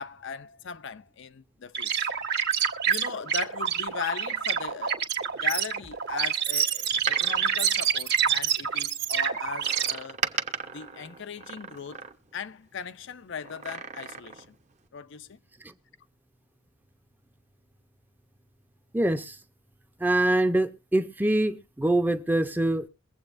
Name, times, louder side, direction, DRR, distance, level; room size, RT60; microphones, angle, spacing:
voice 1, 0.0-2.1 2.9-5.0 5.3-10.2 10.7-12.0 12.3-14.5 14.9-15.4, left 6 dB, 60° left, 0.5 m, -38 dB
sound 1, 1.7-9.9, right 8 dB, 55° right, 1.5 m, -27 dB
Door, 6.9-8.7 9.6-12.5 13.4-14.6 14.9-15.0, right 6 dB, 35° right, 0.9 m, -37 dB
voice 2, 18.9-19.4 20.0-22.9, right 1 dB, 10° right, 0.7 m, -24 dB
23.0 x 7.8 x 2.5 m
head